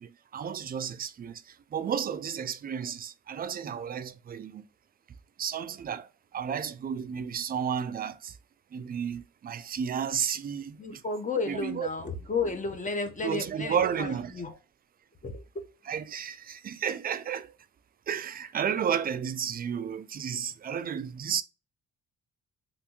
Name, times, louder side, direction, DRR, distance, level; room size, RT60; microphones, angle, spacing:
voice 1, 0.0-4.7 5.4-8.4 8.7-11.0 11.5-11.9 13.2-14.4 15.9-17.5 18.1-21.4, right 8 dB, 30° right, 0.3 m, -32 dB
voice 2, 10.8-14.5 15.2-15.6, left 3 dB, 25° left, 0.8 m, -32 dB
3.4 x 2.6 x 2.9 m
cardioid pair, 90°, 30 cm